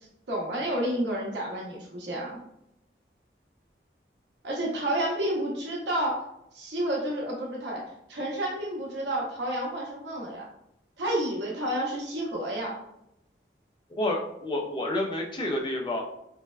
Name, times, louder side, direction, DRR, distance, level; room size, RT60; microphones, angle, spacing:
voice 1, 0.3-2.4 4.4-6.3 6.5-10.5 11.0-12.7, right 1 dB, 75° right, -3 dB, 0.7 m, -30 dB
voice 2, 13.9-16.0, left 1 dB, 25° left, 1 dB, 0.4 m, -29 dB
3.2 x 2.1 x 2.2 m, 0.81 s
head